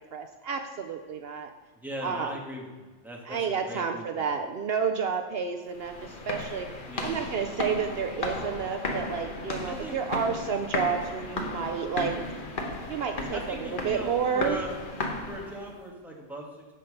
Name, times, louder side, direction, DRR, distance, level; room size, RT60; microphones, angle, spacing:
voice 1, 0.0-1.5 2.0-2.4 3.3-12.2 12.9-14.6, right 6 dB, 65° right, 6 dB, 0.8 m, -30 dB
voice 2, 1.7-4.3 6.9-7.3 9.7-10.4 11.3-11.6 13.3-14.8 15.3-16.7, equal, ahead, -1 dB, 1.3 m, -40 dB
sound 1, 5.7-15.7, left 2 dB, 50° left, 1.2 m, -35 dB
8.6 x 5.7 x 5.3 m, 1.3 s
omnidirectional pair, 1.2 m